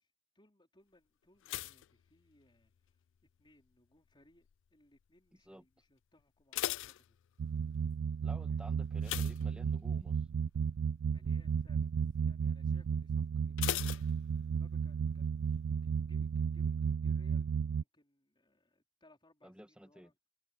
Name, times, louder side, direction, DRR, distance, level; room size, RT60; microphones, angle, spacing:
voice 1, 0.3-3.0 3.4-7.2 8.5-9.1 11.1-14.0 14.5-20.2, left 1 dB, 20° left, 4.4 m, -68 dB
sound 1, 1.4-2.9 3.2-3.7 4.3-4.7 4.9-5.0 5.4-5.5 6.2-7.7 9.0-10.1 10.5-10.8 11.1-11.2 13.6-14.8 15.0-15.1, left 14 dB, 55° left, 0.3 m, -40 dB
sound 2, 7.4-17.8, right 6 dB, 75° right, 0.4 m, -34 dB
voice 2, 8.2-10.3 19.4-20.1, equal, 5° right, 1.9 m, -53 dB
head